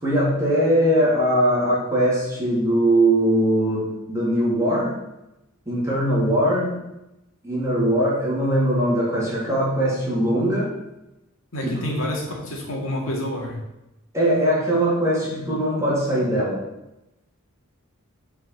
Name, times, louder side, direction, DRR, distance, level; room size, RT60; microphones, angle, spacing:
voice 1, 0.0-5.0 5.7-6.8 7.4-10.7 11.6-11.8 14.1-16.6, right 1 dB, 15° right, -7 dB, 2.5 m, -21 dB
voice 2, 11.5-13.6, left 1 dB, 70° left, -1 dB, 2.2 m, -28 dB
6.9 x 4.7 x 6.3 m, 0.93 s
head